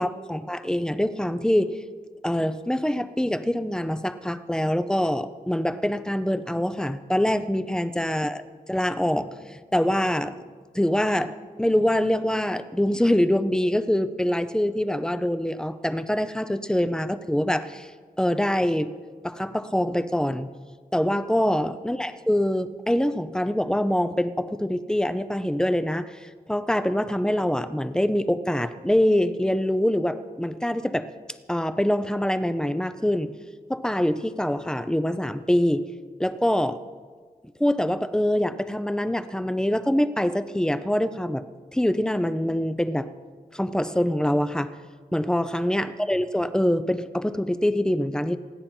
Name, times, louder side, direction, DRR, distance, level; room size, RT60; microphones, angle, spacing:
voice 1, 0.0-1.8 2.2-8.4 8.7-10.3 10.7-17.9 18.2-18.9 19.2-20.5 20.9-31.1 31.5-33.3 33.7-35.8 36.2-36.8 37.6-41.4 41.7-43.1 43.5-44.7 45.1-48.4, left 1 dB, 5° left, 11 dB, 0.7 m, -24 dB
28.0 x 9.7 x 4.5 m, 1.5 s
wide cardioid pair, 115°, 16 cm